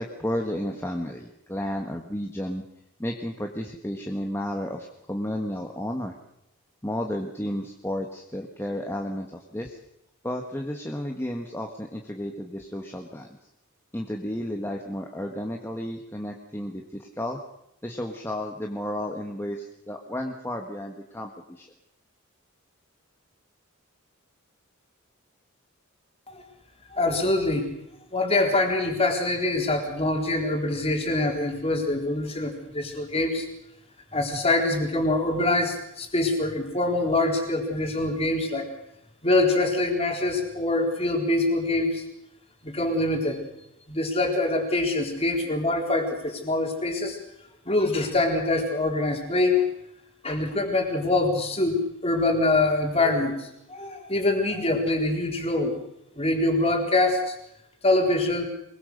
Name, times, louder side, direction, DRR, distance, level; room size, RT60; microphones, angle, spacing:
voice 1, 0.0-2.6 3.0-6.1 6.8-9.8 10.2-13.4 13.9-17.4 17.8-21.7, left 1 dB, 10° left, 2 dB, 1.5 m, -32 dB
voice 2, 26.9-27.7 28.1-33.5 34.1-38.7 39.2-42.0 42.6-43.4 43.9-47.2 47.7-49.7 50.2-55.7 56.2-57.4 57.8-58.5, left 2 dB, 30° left, 2 dB, 4.0 m, -24 dB
23.5 x 21.5 x 6.7 m, 0.83 s
head